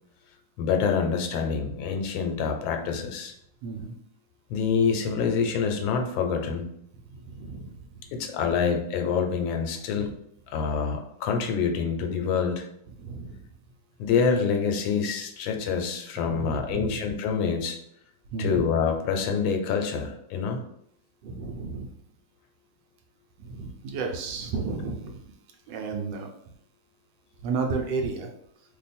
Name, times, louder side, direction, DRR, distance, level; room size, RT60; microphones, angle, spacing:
voice 1, 0.6-3.3 4.5-6.7 8.1-10.1 10.5-12.7 14.0-17.8 18.4-20.6, left 6 dB, 80° left, 5 dB, 1.3 m, -26 dB
voice 2, 3.6-3.9 7.1-7.8 9.9-10.1 13.0-13.4 16.1-16.9 18.3-18.6 21.2-21.9 23.4-25.2 25.7-26.3 27.4-28.3, right 4 dB, 75° right, 3 dB, 1.2 m, -32 dB
3.1 x 2.2 x 4.1 m, 0.71 s
omnidirectional pair, 2.1 m